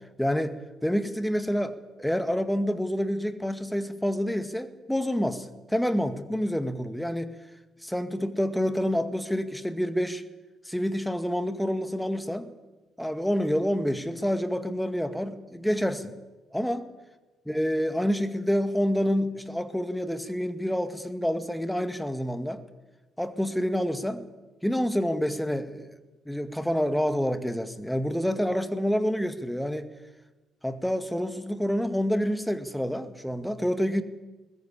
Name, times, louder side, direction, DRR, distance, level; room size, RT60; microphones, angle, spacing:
voice 1, 0.2-7.3 7.8-10.2 10.7-12.5 13.0-16.2 16.5-16.9 17.5-22.6 23.2-24.2 24.6-25.9 26.3-29.9 30.6-34.0, equal, 5° left, 10 dB, 2.0 m, -28 dB
20.5 x 20.5 x 8.6 m, 1.1 s
figure-of-eight pair, 45°, 0 cm